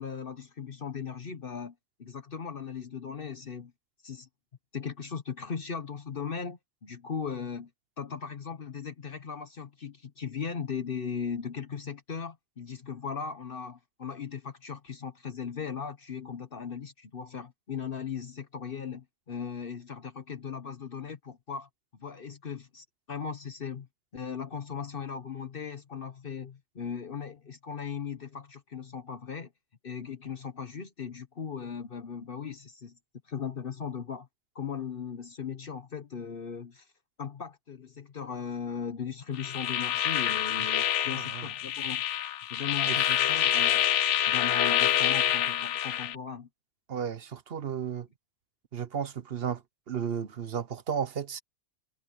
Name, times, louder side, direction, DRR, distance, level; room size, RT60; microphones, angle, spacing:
voice 1, 0.0-3.7 4.0-4.3 4.7-7.7 8.0-21.7 22.0-23.9 24.1-29.5 29.8-33.0 33.2-34.3 34.5-36.9 37.2-42.0 42.5-43.8 44.3-46.5, left 6 dB, 55° left, 1.2 m, -38 dB
sound 1, 39.4-46.1, left 11 dB, 90° left, 1.0 m, -27 dB
voice 2, 41.1-41.5 42.9-43.1 46.9-48.1 48.7-51.4, right 7 dB, 60° right, 1.1 m, -34 dB
omnidirectional pair, 1.2 m